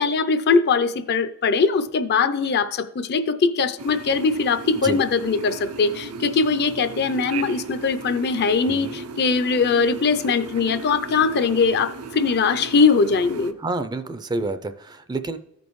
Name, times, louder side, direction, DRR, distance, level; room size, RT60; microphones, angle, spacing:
voice 1, 0.0-13.5, left 5 dB, 50° left, 0.5 m, -21 dB
sound 1, 3.8-13.5, right 4 dB, 85° right, 0.6 m, -36 dB
voice 2, 8.6-9.0 13.6-15.4, right 2 dB, 20° right, 0.4 m, -28 dB
14.5 x 5.2 x 3.1 m
head